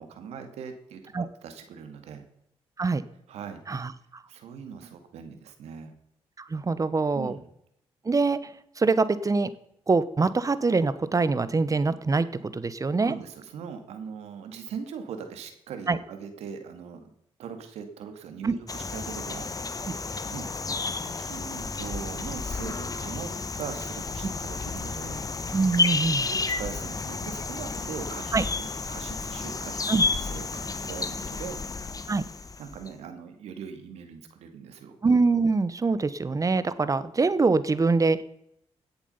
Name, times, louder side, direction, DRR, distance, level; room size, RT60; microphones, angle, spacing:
voice 1, 0.0-1.2 1.4-2.2 3.3-3.6 4.3-5.9 7.1-7.5 13.0-17.0 17.4-19.5 20.3-20.5 20.8-25.2 26.2-31.6 32.6-35.0, right 6 dB, 90° right, 7 dB, 2.0 m, -40 dB
voice 2, 3.7-4.2 6.4-7.4 8.0-9.5 9.9-13.1 15.9-16.0 18.4-18.5 19.8-19.9 25.5-26.3 28.3-28.4 29.9-30.0 32.1-32.2 35.0-38.2, right 3 dB, 30° right, 14 dB, 1.0 m, -24 dB
sound 1, 18.7-32.9, left 4 dB, 35° left, 1.2 m, -31 dB
17.0 x 7.2 x 5.6 m, 0.76 s
cardioid pair, 70°, 11 cm